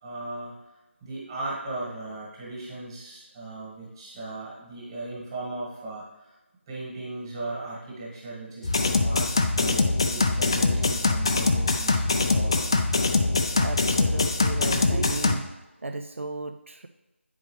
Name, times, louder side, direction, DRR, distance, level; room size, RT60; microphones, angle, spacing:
voice 1, 0.0-0.6 1.0-6.4 6.7-12.7 14.9-15.0, right 2 dB, 20° right, -5 dB, 1.6 m, -37 dB
sound 1, 8.6-15.3, left 3 dB, 25° left, 0.3 m, -23 dB
voice 2, 13.5-15.4 15.8-16.9, right 2 dB, 70° right, 7 dB, 0.4 m, -34 dB
8.8 x 4.8 x 3.2 m, 1.0 s
figure-of-eight pair, 165°, 7 cm